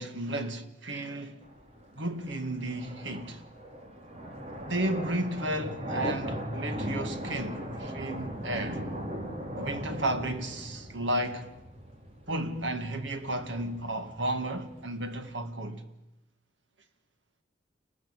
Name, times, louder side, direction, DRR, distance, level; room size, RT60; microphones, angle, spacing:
voice 1, 0.0-1.4 2.0-3.4 4.7-8.8 9.6-11.5 12.3-15.8, right 1 dB, 80° right, 2.3 m, -33 dB
sound 1, 1.4-15.3, equal, 35° right, 3.5 m, -38 dB
28.5 x 19.5 x 9.1 m
head